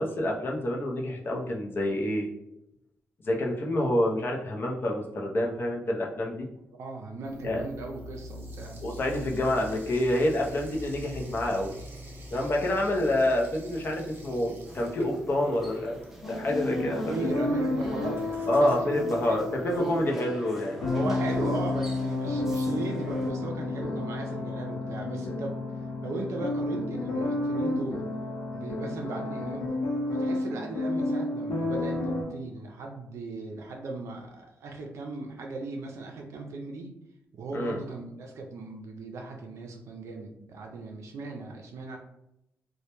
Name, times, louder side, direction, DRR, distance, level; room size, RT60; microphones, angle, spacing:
voice 1, 0.0-2.3 3.2-6.5 7.4-7.6 8.8-11.7 12.3-16.0 16.3-17.3 18.5-20.8 37.5-37.8, left 1 dB, 45° left, 0 dB, 0.5 m, -27 dB
voice 2, 6.7-8.8 17.0-20.3 20.9-28.1 28.5-29.7 30.1-36.9 37.3-42.0, right 3 dB, 75° right, 1 dB, 0.4 m, -37 dB
sound 1, 7.2-20.1, equal, 45° right, 0.8 m, -45 dB
sound 2, 14.6-23.3, right 1 dB, 5° right, 0.5 m, -46 dB
sound 3, 16.2-32.2, left 2 dB, 90° left, 0.7 m, -31 dB
2.1 x 2.1 x 2.9 m, 0.84 s
cardioid pair, 80°, 5 cm